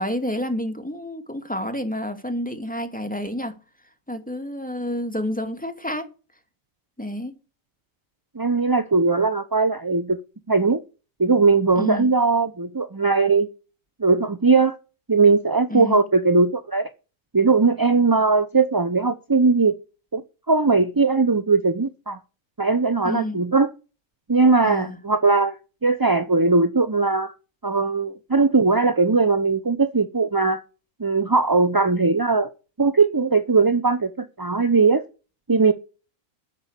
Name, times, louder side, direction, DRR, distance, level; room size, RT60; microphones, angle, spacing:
voice 1, 0.0-3.6 4.1-6.1 7.0-7.4 11.8-12.1 15.7-16.0 23.0-23.4 24.6-25.0, left 1 dB, 5° left, 2.4 m, -29 dB
voice 2, 8.3-10.2 10.5-10.8 11.2-13.5 14.0-14.8 15.1-16.9 17.3-19.7 20.1-20.2 20.5-22.2 22.6-23.7 24.3-27.3 27.6-30.6 31.0-32.5 32.8-35.0 35.5-35.7, right 4 dB, 20° right, 0.6 m, -19 dB
10.5 x 8.3 x 8.2 m
omnidirectional pair, 1.5 m